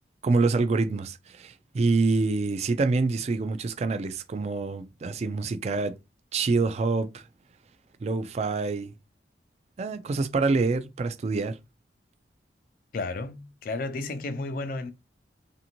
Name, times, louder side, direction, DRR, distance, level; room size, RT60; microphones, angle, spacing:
voice 1, 0.2-6.0 6.3-7.2 8.0-8.9 9.8-11.6, right 3 dB, 35° right, 0.3 m, -26 dB
voice 2, 12.9-14.9, left 3 dB, 50° left, 0.4 m, -32 dB
2.6 x 2.5 x 2.9 m
head